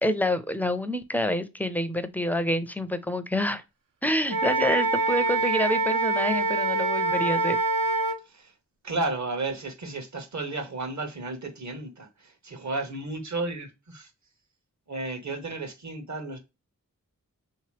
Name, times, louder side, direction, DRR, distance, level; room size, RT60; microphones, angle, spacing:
voice 1, 0.0-3.6 4.0-7.6, left 1 dB, 5° left, 0.4 m, -27 dB
Wind instrument woodwind instrument, 4.3-8.2, right 2 dB, 80° right, 0.7 m, -25 dB
voice 2, 8.8-14.1 14.9-16.4, right 2 dB, 55° right, 1.0 m, -33 dB
3.5 x 2.9 x 3.1 m
wide cardioid pair, 80°, 33 cm